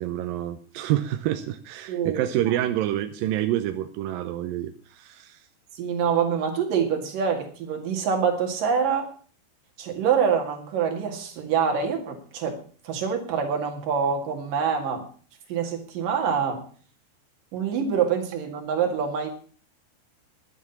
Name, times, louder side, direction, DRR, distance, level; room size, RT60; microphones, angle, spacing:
voice 1, 0.0-5.4, right 13 dB, 75° right, 8 dB, 2.2 m, -27 dB
voice 2, 1.9-2.6 5.7-9.1 9.8-12.6 12.8-15.0 15.5-16.6 17.5-19.3, right 7 dB, 60° right, 3 dB, 3.5 m, -25 dB
11.0 x 9.8 x 7.0 m, 0.42 s
omnidirectional pair, 4.8 m